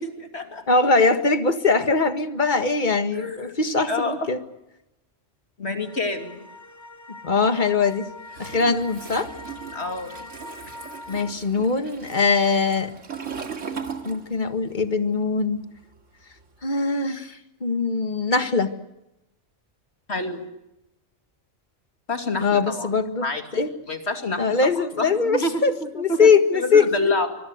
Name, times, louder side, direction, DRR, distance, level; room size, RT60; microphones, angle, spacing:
voice 1, 0.0-0.6 3.1-3.5 3.9-4.3 5.6-6.4 9.7-10.3 20.1-20.4 22.1-22.9 23.2-23.6 23.9-24.6 25.0-27.3, left 2 dB, 60° left, 5 dB, 2.9 m, -28 dB
voice 2, 0.7-4.4 7.1-8.1 8.4-9.3 11.1-12.9 14.1-15.6 16.6-18.7 22.4-23.3 23.5-23.7 24.4-26.8, left 4 dB, 40° left, 9 dB, 1.8 m, -21 dB
sound 1, 5.8-11.3, left 2 dB, 15° left, 2.4 m, -42 dB
Toilet flush, 8.3-14.7 15.0-16.6, right 6 dB, 75° right, 2.4 m, -38 dB
25.5 x 23.0 x 8.1 m, 0.91 s
omnidirectional pair, 1.3 m